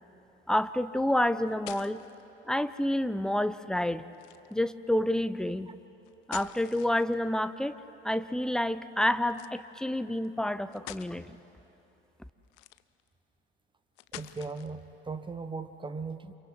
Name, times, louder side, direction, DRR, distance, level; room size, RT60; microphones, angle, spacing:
voice 1, 0.5-2.0 2.5-4.0 4.5-5.7 6.3-7.8 8.0-11.4, left 1 dB, ahead, 13 dB, 0.7 m, -29 dB
sound 1, 1.2-2.2 4.1-4.6 6.0-7.4 9.3-9.6 10.2-10.3 10.7-11.1 12.4-13.1 14.0-14.8, left 18 dB, 55° left, 0.7 m, -46 dB
voice 2, 14.1-16.4, right 4 dB, 15° right, 10 dB, 1.1 m, -38 dB
29.0 x 27.5 x 4.5 m, 2.9 s
figure-of-eight pair, 60°, 30 cm